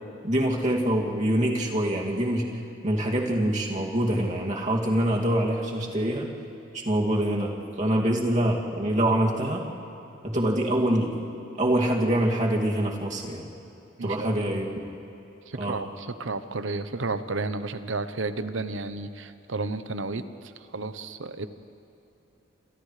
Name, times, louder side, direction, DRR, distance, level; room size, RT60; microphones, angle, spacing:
voice 1, 0.2-2.6 2.8-6.3 6.7-7.5 7.8-9.6 10.2-11.2 11.6-13.5 14.0-14.9 15.5-15.8, right 1 dB, 40° right, -2 dB, 2.5 m, -25 dB
voice 2, 14.0-14.4 15.5-21.5, right 3 dB, 75° right, 11 dB, 0.9 m, -32 dB
28.5 x 28.5 x 3.3 m, 2.9 s
head